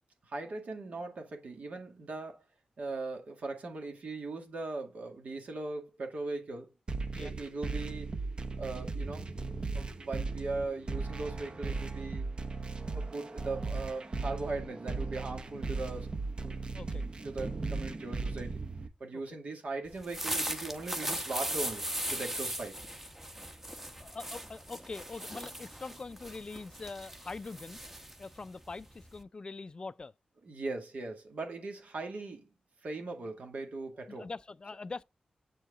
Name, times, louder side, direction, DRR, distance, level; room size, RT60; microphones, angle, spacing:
voice 1, 0.3-2.4 2.8-6.7 7.2-8.2 8.6-9.3 9.7-12.2 12.9-16.1 16.4-16.6 17.2-18.6 19.0-22.8 30.4-32.5 32.8-34.3, right 3 dB, 70° right, 2.1 m, -39 dB
sound 1, 6.9-18.9, right 3 dB, 40° right, 0.8 m, -37 dB
sound 2, 19.9-29.2, right 1 dB, 10° right, 0.9 m, -38 dB
voice 2, 24.0-27.8 28.2-30.1 34.1-35.0, left 3 dB, 35° left, 0.3 m, -43 dB
7.8 x 4.7 x 3.7 m
wide cardioid pair, 110°, 3 cm